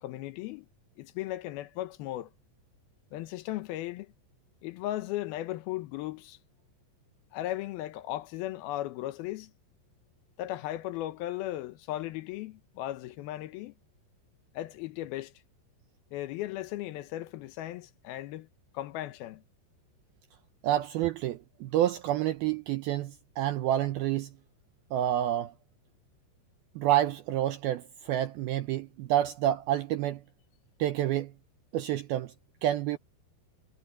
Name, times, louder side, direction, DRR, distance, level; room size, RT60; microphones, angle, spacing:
voice 1, 0.0-0.7 1.0-2.3 3.1-4.1 4.6-6.4 7.3-9.5 10.4-13.7 14.5-15.3 16.1-18.5 18.7-19.4, left 15 dB, 75° left, 2.3 m, -36 dB
voice 2, 20.6-24.3 24.9-25.5 26.8-30.2 30.8-31.3 31.7-32.3 32.6-33.0, right 12 dB, 85° right, 2.2 m, -28 dB
omnidirectional pair, 5.4 m